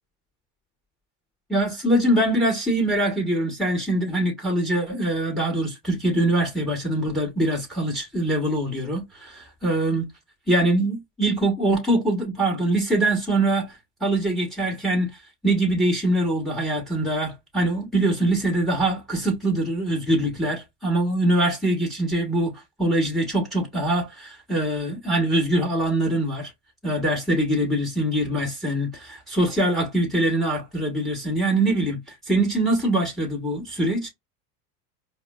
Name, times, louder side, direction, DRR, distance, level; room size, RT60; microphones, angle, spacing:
voice 1, 1.5-10.1 10.5-15.1 15.4-22.5 22.8-26.5 26.8-34.1, right 1 dB, ahead, 1.7 m, -23 dB
4.7 x 2.2 x 2.3 m
hypercardioid pair, 95°, 45 cm